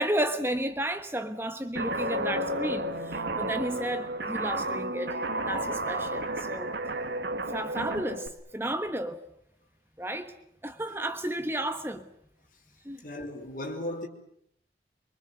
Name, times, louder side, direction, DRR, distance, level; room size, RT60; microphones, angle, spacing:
voice 1, 0.0-5.2 5.5-6.8 7.5-9.2 10.0-10.3 10.6-12.1 12.8-13.0, right 1 dB, 15° right, 1.2 m, -32 dB
Guitar, 1.8-8.3, right 1 dB, 75° right, 2.0 m, -32 dB
voice 2, 13.0-14.1, left 1 dB, 50° left, 4.5 m, -36 dB
26.0 x 24.0 x 7.9 m
head